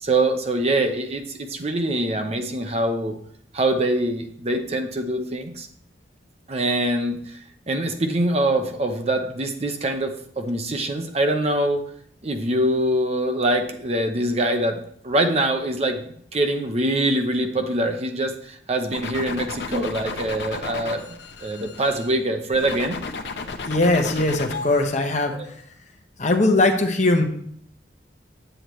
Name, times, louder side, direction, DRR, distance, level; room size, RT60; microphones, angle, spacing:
voice 1, 0.0-3.2 3.5-5.7 6.5-7.4 7.7-11.8 12.2-16.0 16.3-23.0 25.3-25.5, right 1 dB, 35° right, 5 dB, 0.7 m, -24 dB
sound 1, 18.9-22.1 22.5-24.8, left 4 dB, 70° left, 0.7 m, -33 dB
voice 2, 23.7-25.6 26.2-27.2, left 2 dB, 40° left, 4 dB, 1.0 m, -20 dB
8.5 x 7.9 x 3.1 m, 0.64 s
head